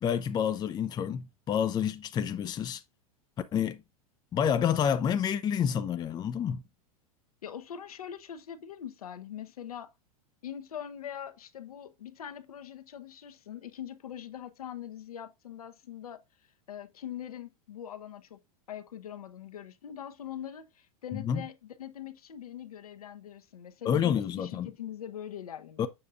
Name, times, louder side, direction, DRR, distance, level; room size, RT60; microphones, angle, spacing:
voice 1, 0.0-2.8 3.5-3.8 4.3-6.6 21.1-21.4 23.8-24.7 25.8-25.9, left 8 dB, 20° left, 0.5 m, -28 dB
voice 2, 7.4-9.9 10.4-16.2 16.7-18.4 18.7-25.9, left 10 dB, 70° left, 0.9 m, -42 dB
7.1 x 6.5 x 2.5 m
figure-of-eight pair, 95°, 19 cm